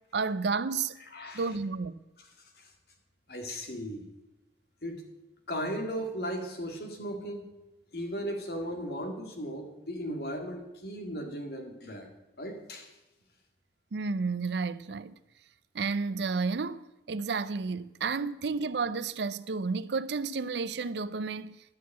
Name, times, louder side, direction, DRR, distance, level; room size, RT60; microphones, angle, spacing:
voice 1, 0.1-0.9 1.3-2.0 13.9-15.1 15.7-21.6, right 4 dB, 75° right, 0.5 m, -31 dB
voice 2, 1.1-1.5 2.2-2.7 3.3-4.1 4.8-5.1 5.5-7.5 7.9-12.1 12.4-12.9, equal, 60° left, 2.0 m, -37 dB
11.5 x 6.3 x 8.3 m
head